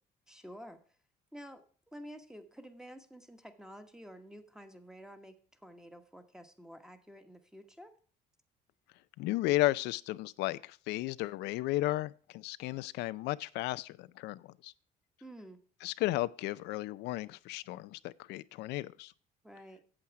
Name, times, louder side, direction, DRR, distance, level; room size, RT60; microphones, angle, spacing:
voice 1, 0.3-0.8 1.3-7.9 15.2-15.6 19.4-19.8, equal, 5° right, 1.2 m, -50 dB
voice 2, 9.2-14.7 15.8-19.1, left 17 dB, 85° left, 0.4 m, -34 dB
8.7 x 7.7 x 4.7 m
cardioid pair, 110°, 17 cm